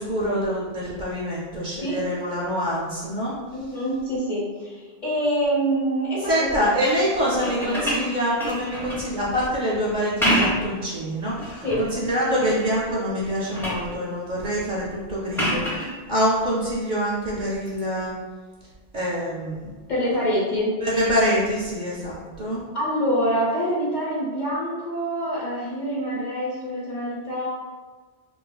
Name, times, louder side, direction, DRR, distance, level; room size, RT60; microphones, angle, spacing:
voice 1, 0.0-3.3 6.2-18.2 18.9-19.7 20.8-22.6, equal, 55° right, -5 dB, 0.6 m, -25 dB
voice 2, 3.5-6.8 7.2-7.9 11.6-11.8 19.9-20.8 22.7-27.5, equal, 50° left, -8 dB, 1.0 m, -26 dB
sound 1, 7.3-9.1 10.0-10.8 11.2-11.9 12.4-12.9 13.2-13.9 15.3-15.9 17.7-17.8, equal, 5° left, 0.5 m, -27 dB
2.9 x 2.4 x 2.2 m, 1.4 s
omnidirectional pair, 1.1 m